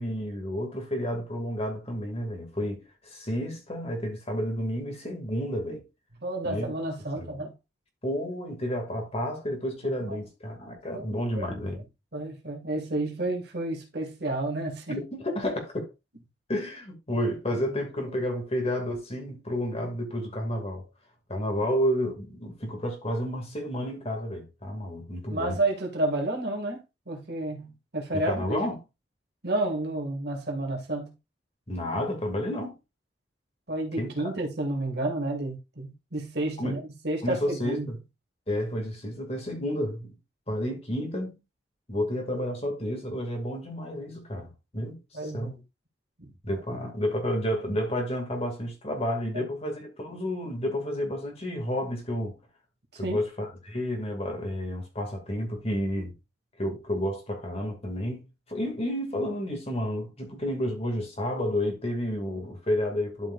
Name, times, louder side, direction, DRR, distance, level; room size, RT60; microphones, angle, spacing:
voice 1, 0.0-5.8 6.4-6.7 7.2-7.4 8.0-11.8 14.9-15.9 16.5-20.8 21.3-25.6 28.1-28.8 31.7-32.7 34.0-34.3 36.6-36.8 37.2-38.0 38.5-40.2 40.5-41.4 41.9-45.5 46.4-52.4 53.0-56.2 56.6-63.3, equal, 35° left, 2.4 m, -31 dB
voice 2, 6.2-7.5 9.8-10.2 10.9-11.8 12.1-15.0 25.3-28.6 29.4-31.2 33.7-37.9 45.1-45.5 46.2-46.3 46.7-46.8 49.3-49.4 53.0-53.2, right 2 dB, 60° right, 2.3 m, -31 dB
12.0 x 5.2 x 2.5 m
head